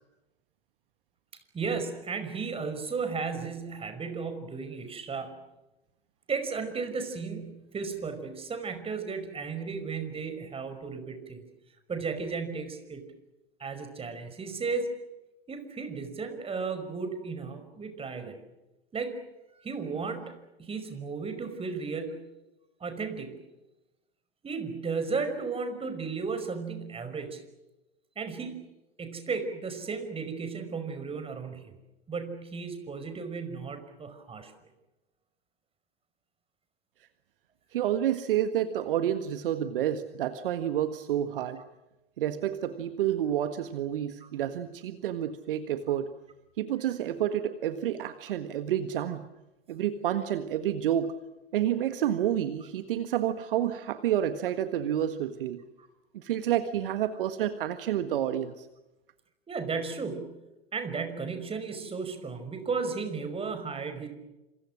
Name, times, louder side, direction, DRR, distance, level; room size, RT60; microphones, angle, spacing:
voice 1, 1.5-5.3 6.3-11.5 11.9-13.0 13.6-14.9 15.5-18.4 18.9-19.2 19.6-20.3 20.6-22.2 22.8-23.4 24.4-27.4 28.2-28.6 29.0-31.8 32.1-34.5 44.2-44.3 55.8-55.9 59.5-60.3 60.7-64.1, right 4 dB, 20° right, 9 dB, 5.6 m, -34 dB
voice 2, 37.7-41.6 42.2-46.1 46.6-49.3 49.7-51.2 51.5-55.6 56.1-58.7, right 11 dB, 60° right, 10 dB, 1.7 m, -29 dB
27.5 x 27.5 x 6.3 m, 1.0 s
figure-of-eight pair, 90°, 31 cm